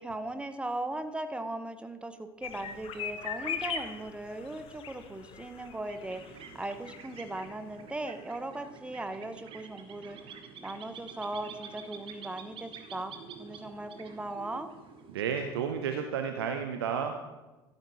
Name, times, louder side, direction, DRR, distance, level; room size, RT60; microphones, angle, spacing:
voice 1, 0.0-13.1 13.4-14.7, right 2 dB, 10° right, 9 dB, 0.9 m, -38 dB
sound 1, 2.4-7.6 7.8-7.9 8.2-8.3, left 7 dB, 45° left, 1.0 m, -40 dB
sound 2, 5.5-15.9, right 6 dB, 40° right, 1.2 m, -49 dB
voice 2, 15.1-17.2, right 7 dB, 70° right, 6 dB, 0.7 m, -31 dB
13.0 x 8.1 x 4.1 m, 1.1 s
figure-of-eight pair, 65°, 14 cm